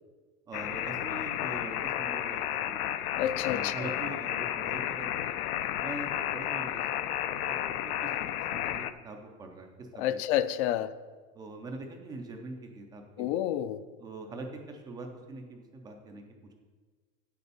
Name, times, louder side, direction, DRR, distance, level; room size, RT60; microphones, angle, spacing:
sound 1, 0.5-8.9, left 12 dB, 90° left, 0.7 m, -32 dB
voice 1, 0.5-3.0 3.4-5.4 5.8-8.1 8.5-10.2 11.3-13.4 14.0-16.2, right 2 dB, 10° right, 3 dB, 0.3 m, -43 dB
voice 2, 3.2-3.7 10.0-10.9 13.2-13.8, left 12 dB, 50° left, 14 dB, 0.5 m, -29 dB
8.4 x 6.8 x 6.7 m, 1.4 s
supercardioid pair, 155°, 43 cm